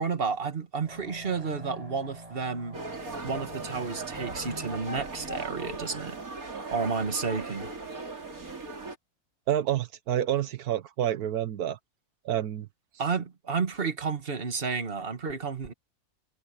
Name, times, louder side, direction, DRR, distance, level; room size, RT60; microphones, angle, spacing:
voice 1, 0.0-2.8 3.2-6.2 6.7-7.7 13.0-15.7, right 5 dB, 40° right, 1.9 m, -31 dB
sound 1, 0.8-7.0, right 1 dB, 25° right, 4.3 m, -47 dB
sound 2, 2.7-9.0, right 3 dB, 65° right, 3.6 m, -38 dB
voice 2, 9.5-11.8 12.2-12.7, right 11 dB, 85° right, 1.4 m, -28 dB
omnidirectional pair, 1.6 m